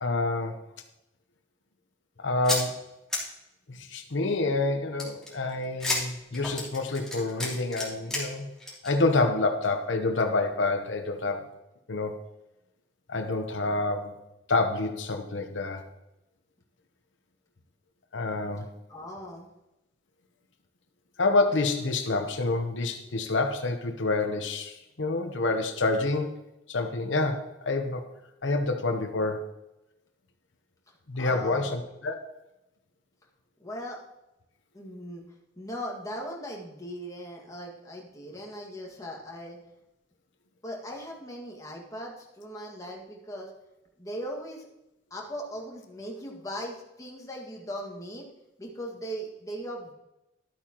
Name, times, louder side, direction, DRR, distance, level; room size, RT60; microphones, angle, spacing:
voice 1, 0.0-0.6 2.2-2.8 3.7-8.5 8.8-11.4 11.9-12.1 13.1-14.2 14.5-15.8 18.1-18.7 21.2-26.3 26.7-28.0 28.4-29.4 31.1-32.3, left 3 dB, 90° left, 5 dB, 0.9 m, -27 dB
sound 1, 2.4-2.6 3.1-3.2 5.0-8.3 8.6-8.9 9.3-9.4 9.6-9.7, left 2 dB, 5° left, 3.0 m, -31 dB
voice 2, 18.9-19.5 31.2-31.8 33.6-34.0 34.7-35.2 35.6-39.6 40.6-43.5 44.0-44.7 45.1-48.3 48.6-49.9, equal, 20° left, -1 dB, 1.9 m, -39 dB
12.0 x 8.6 x 3.0 m, 0.90 s
head